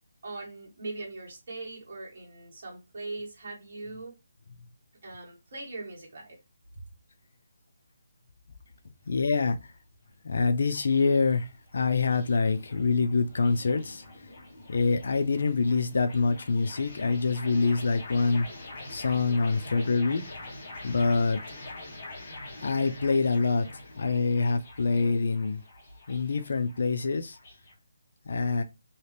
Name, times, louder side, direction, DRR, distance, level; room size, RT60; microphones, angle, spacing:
voice 1, 0.2-4.1 5.0-6.4 6.7-6.8, right 2 dB, 40° right, 1.7 m, -40 dB
sound 1, 8.8-27.7, left 2 dB, 25° left, 0.9 m, -46 dB
voice 2, 9.1-9.6 10.2-14.3 14.7-18.5 18.9-20.2 20.8-21.4 22.6-25.6 26.1-27.4 28.3-28.6, left 4 dB, 55° left, 0.4 m, -26 dB
2.9 x 2.8 x 3.2 m
hypercardioid pair, 175°, 0 cm